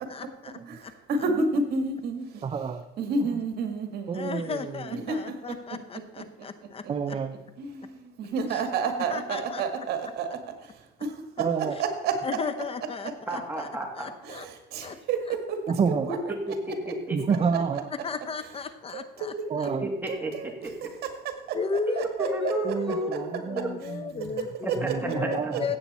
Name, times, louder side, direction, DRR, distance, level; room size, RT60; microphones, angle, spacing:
voice 1, 0.1-0.5 0.8-0.9 4.1-6.9 8.5-8.6 9.1-9.6 12.2-13.7 13.9-14.5 14.8-15.0 18.0-19.7 20.2-20.3 21.5-25.8, left 5 dB, 35° left, 12 dB, 0.8 m, -35 dB
voice 2, 1.1-2.2 3.0-4.2 4.9-5.2 5.5-5.6 7.6-7.9 8.2-10.3 11.6-12.2 14.2-15.6 16.1-16.2 18.9-19.8 20.1-20.5 21.0-21.6 22.0-22.8 24.4-25.2 25.5-25.8, right 4 dB, 70° right, 6 dB, 1.9 m, -30 dB
voice 3, 2.4-2.8 4.1-4.9 6.9-7.3 11.4-11.8 15.7-16.1 17.1-17.9 19.5-19.9 22.6-24.3 24.8-25.7, right 6 dB, 35° right, 8 dB, 0.7 m, -29 dB
voice 4, 13.3-14.1 16.5-17.2 19.8-20.9 22.2-23.2 24.6-24.9 25.2-25.5, right 1 dB, 10° right, 1 dB, 2.5 m, -32 dB
15.5 x 8.2 x 4.2 m, 0.96 s
cardioid pair, 110°, 17 cm